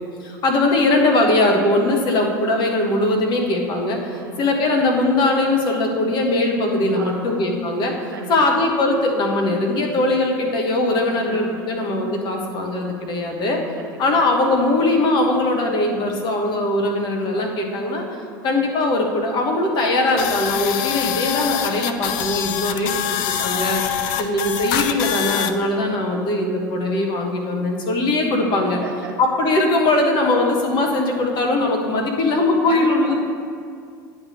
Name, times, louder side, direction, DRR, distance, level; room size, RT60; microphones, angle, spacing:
voice 1, 0.2-7.9 8.3-13.6 14.0-18.0 18.4-22.9 23.4-28.8 29.2-33.1, left 2 dB, 40° left, 1 dB, 1.3 m, -20 dB
voice 2, 7.0-7.4 8.1-8.6 11.1-11.8 13.8-14.0 22.6-23.3 28.8-29.1 32.7-33.1, right 4 dB, 80° right, 1 dB, 1.0 m, -36 dB
sound 1, 20.2-25.5, left 10 dB, 60° left, 0.5 m, -24 dB
9.2 x 3.4 x 6.5 m, 2.2 s
hypercardioid pair, 80°, 11 cm